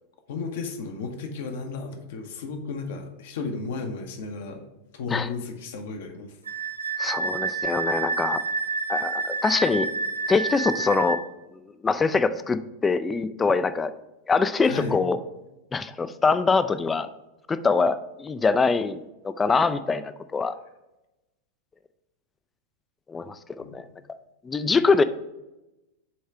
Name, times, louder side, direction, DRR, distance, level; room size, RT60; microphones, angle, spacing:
voice 1, 0.3-4.7 4.9-6.4 14.6-15.0 23.6-23.8, left 4 dB, 55° left, 4 dB, 0.9 m, -34 dB
Wind instrument woodwind instrument, 6.5-11.2, right 4 dB, 75° right, 0.4 m, -29 dB
voice 2, 7.0-8.4 8.9-9.9 10.3-11.2 11.8-13.9 14.3-15.2 15.7-17.1 17.5-20.5 23.1-23.8 24.4-25.0, left 4 dB, 15° left, 12 dB, 0.3 m, -24 dB
7.1 x 3.1 x 4.6 m, 0.98 s
figure-of-eight pair, 90°, 0 cm